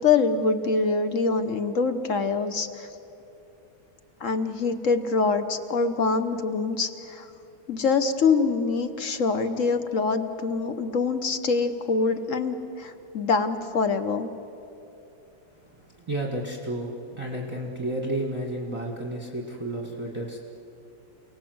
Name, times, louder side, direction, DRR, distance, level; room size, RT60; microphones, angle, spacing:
voice 1, 0.0-2.9 4.2-7.3 7.7-14.3, left 4 dB, 50° left, 9 dB, 1.0 m, -25 dB
voice 2, 15.8-20.4, right 1 dB, 15° right, 0 dB, 1.4 m, -32 dB
28.5 x 18.5 x 7.9 m, 2.8 s
omnidirectional pair, 2.4 m